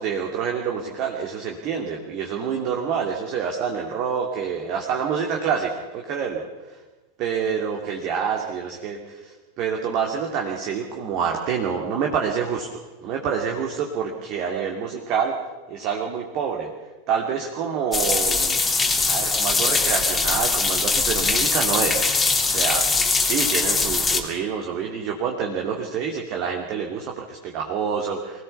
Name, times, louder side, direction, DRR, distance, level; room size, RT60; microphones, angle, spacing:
voice 1, 0.0-6.4 7.2-12.7 13.0-15.3 15.7-16.7 17.1-18.6 19.0-22.1 22.4-28.4, right 6 dB, 40° right, 1 dB, 2.5 m, -27 dB
sound 1, 17.9-24.2, left 4 dB, 10° left, 2.9 m, -21 dB
25.0 x 17.0 x 7.0 m, 1.2 s
figure-of-eight pair, 90°, 0 cm